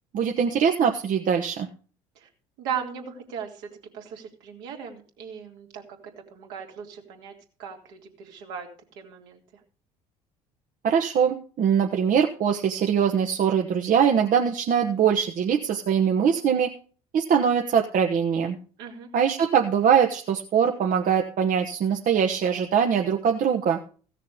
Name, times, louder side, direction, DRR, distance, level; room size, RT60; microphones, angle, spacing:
voice 1, 0.1-1.7 10.8-16.7 17.1-18.6 19.1-23.8, right 7 dB, 45° right, 2 dB, 1.2 m, -22 dB
voice 2, 2.6-8.7 9.0-9.4 18.8-19.1, right 7 dB, 65° right, 1 dB, 2.5 m, -37 dB
16.0 x 6.7 x 5.0 m, 0.40 s
figure-of-eight pair, 60°, 19 cm